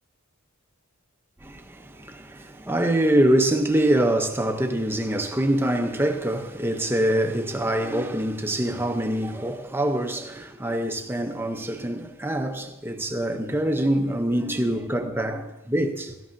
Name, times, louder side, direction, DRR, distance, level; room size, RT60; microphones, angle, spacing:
voice 1, 1.4-16.1, right 1 dB, 10° right, 0.7 m, -25 dB
17.0 x 13.0 x 2.6 m
head